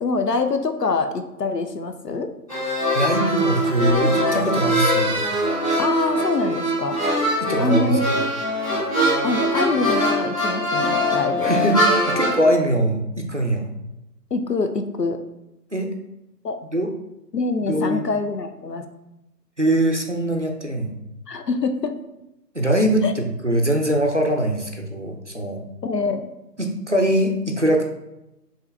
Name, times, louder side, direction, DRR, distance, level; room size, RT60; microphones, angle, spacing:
voice 1, 0.0-2.3 5.8-7.0 7.6-8.1 9.2-11.5 14.3-15.2 16.4-16.6 17.3-18.9 21.3-22.0 23.0-23.1 25.8-26.2, left 3 dB, 80° left, 8 dB, 0.7 m, -25 dB
sound 1, 2.5-12.4, equal, 20° left, 1.3 m, -22 dB
voice 2, 2.9-5.2 7.4-8.0 11.4-11.8 12.1-13.7 15.7-15.9 16.7-16.9 17.7-18.0 19.6-21.0 22.5-25.6 26.6-27.8, right 1 dB, 50° right, 3 dB, 0.5 m, -22 dB
4.6 x 3.0 x 3.2 m, 0.92 s
figure-of-eight pair, 165°, 49 cm